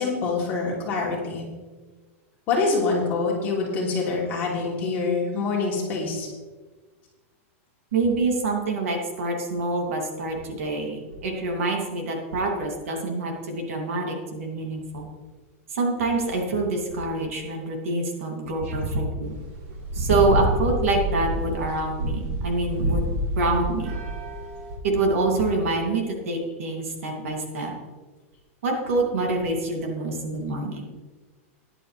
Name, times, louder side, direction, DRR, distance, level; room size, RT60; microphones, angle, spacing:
voice 1, 0.0-1.4 2.5-6.3, left 4 dB, 25° left, -4 dB, 3.2 m, -25 dB
voice 2, 7.9-15.1 15.7-19.4 19.9-23.1 23.4-23.9 24.8-27.7 28.6-30.8, right 2 dB, 70° right, 1 dB, 2.7 m, -26 dB
sound 1, 19.3-24.8, right 1 dB, 40° right, 2.3 m, -28 dB
14.0 x 10.5 x 3.4 m, 1.3 s
supercardioid pair, 175°, 8 cm